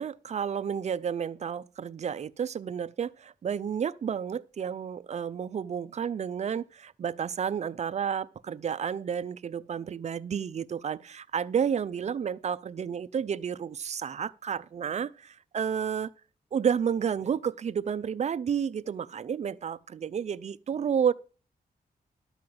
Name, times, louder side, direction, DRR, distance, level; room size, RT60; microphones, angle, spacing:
voice 1, 0.0-16.1 16.5-21.1, right 7 dB, 45° right, 0.5 m, -31 dB
12.5 x 4.8 x 7.8 m
wide cardioid pair, 150°, 16 cm